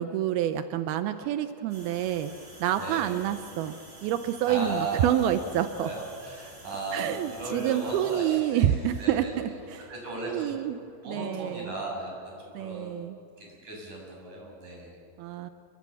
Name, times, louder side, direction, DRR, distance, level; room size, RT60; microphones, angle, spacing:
voice 1, 0.0-2.3 2.6-3.8 4.0-5.9 6.9-9.9 10.3-10.8 11.1-11.7 12.6-13.2 15.2-15.5, right 11 dB, 85° right, 9 dB, 2.1 m, -28 dB
sound 1, 1.7-11.5, right 1 dB, 15° right, 3.6 m, -50 dB
voice 2, 2.8-3.1 4.4-5.3 5.6-8.7 9.0-9.5 9.9-10.6 11.0-13.0 13.4-15.0, right 2 dB, 40° right, -1 dB, 8.3 m, -36 dB
29.5 x 22.5 x 7.2 m, 2.5 s
omnidirectional pair, 5.4 m